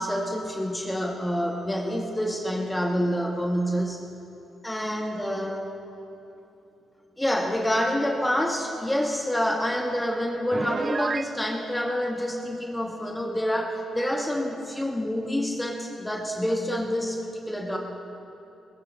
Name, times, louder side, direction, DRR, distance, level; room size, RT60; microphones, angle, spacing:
voice 1, 0.0-4.0 4.6-5.7 7.2-17.8, equal, 10° left, 1 dB, 2.0 m, -27 dB
Piano, 10.5-11.3, right 4 dB, 40° right, 0.4 m, -30 dB
21.0 x 15.5 x 3.6 m, 2.8 s
hypercardioid pair, 45°, 0 cm